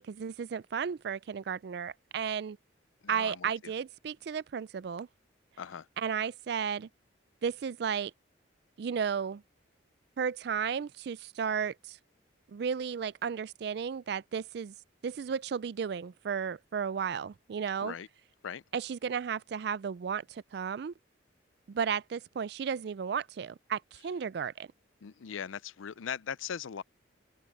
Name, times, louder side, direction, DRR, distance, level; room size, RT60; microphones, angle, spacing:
voice 1, 0.0-2.6 3.1-5.1 6.0-6.9 7.4-8.1 8.8-9.4 10.2-12.0 12.5-14.7 15.0-17.9 18.7-20.9 21.7-24.7, right 7 dB, 55° right, 0.3 m, -34 dB
voice 2, 3.0-3.7 5.6-5.9 17.8-18.1 18.4-18.6 25.0-26.8, left 7 dB, 90° left, 0.5 m, -39 dB
open air
head